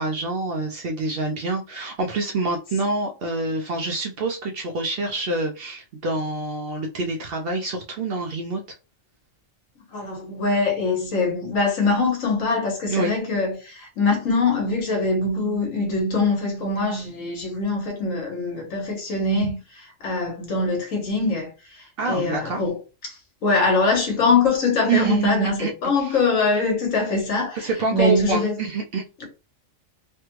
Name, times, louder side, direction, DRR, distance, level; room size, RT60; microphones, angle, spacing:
voice 1, 0.0-8.6 12.9-13.2 22.0-22.6 24.9-25.7 26.0-26.2 27.6-29.0, right 3 dB, 60° right, 0.6 m, -26 dB
voice 2, 9.9-22.8 23.0-28.6 29.2-29.3, left 3 dB, 80° left, 1.4 m, -23 dB
3.3 x 2.2 x 3.0 m
omnidirectional pair, 1.3 m